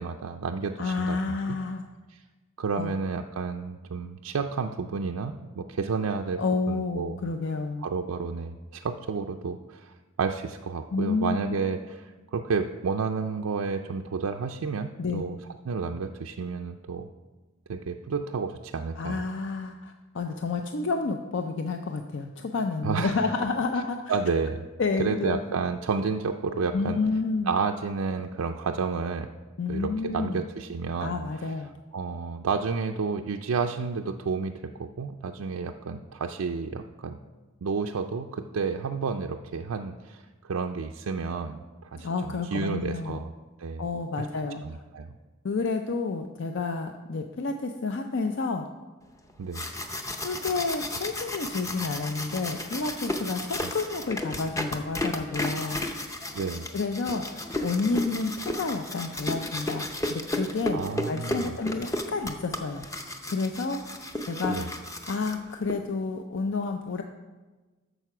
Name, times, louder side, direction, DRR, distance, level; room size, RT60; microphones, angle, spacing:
voice 1, 0.0-1.4 2.1-2.2 2.6-6.4 6.7-7.2 7.8-15.4 15.7-17.1 17.7-19.2 22.8-23.2 24.1-24.7 25.0-27.0 27.4-29.3 29.7-31.5 31.9-37.2 37.6-43.3 43.6-43.8 44.2-44.3 44.6-45.1 49.4-49.7 53.6-53.7 56.3-56.7 60.7-61.6 64.5-64.7, right 5 dB, 85° right, 3 dB, 0.4 m, -31 dB
voice 2, 0.8-1.8 2.7-2.9 6.4-7.8 10.9-11.6 15.0-15.2 19.0-24.0 24.8-25.5 26.7-27.5 29.6-30.4 31.0-31.8 42.0-43.2 43.8-44.8 45.4-48.6 50.2-55.8 56.7-62.8 63.3-64.0 64.3-64.6 65.1-67.0, left 4 dB, 55° left, 5 dB, 0.5 m, -30 dB
sound 1, 49.3-65.7, left 1 dB, 15° left, 0.6 m, -34 dB
9.1 x 6.7 x 5.9 m, 1.3 s
head